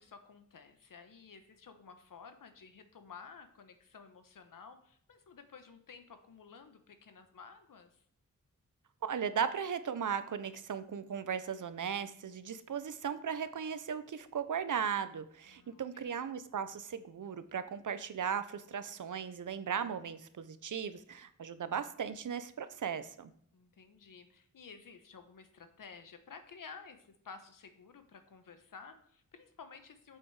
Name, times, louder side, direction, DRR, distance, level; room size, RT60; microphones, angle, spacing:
voice 1, 0.0-8.0 15.5-16.1 23.5-30.2, left 5 dB, 80° left, 8 dB, 1.1 m, -53 dB
voice 2, 9.0-23.3, right 7 dB, 70° right, 12 dB, 0.8 m, -37 dB
7.8 x 7.6 x 4.8 m, 0.65 s
wide cardioid pair, 115°, 32 cm